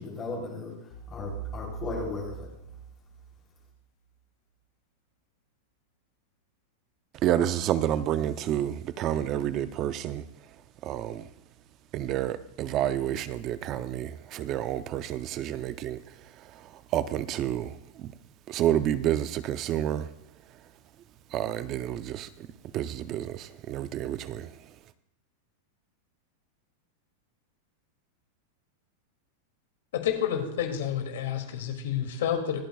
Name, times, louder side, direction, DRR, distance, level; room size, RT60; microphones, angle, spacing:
voice 1, 0.0-2.5, left 3 dB, 20° left, -2 dB, 3.2 m, -36 dB
sound 1, 0.9-3.7, right 5 dB, 45° left, 1.5 m, -41 dB
voice 2, 7.2-10.3 10.8-11.3 11.9-18.1 18.5-20.1 21.3-22.5 22.7-24.7, right 11 dB, 30° right, 13 dB, 0.5 m, -30 dB
voice 3, 30.0-32.6, left 9 dB, 80° left, 4 dB, 2.5 m, -29 dB
26.0 x 8.8 x 2.3 m, 0.83 s
supercardioid pair, 165°, 0 cm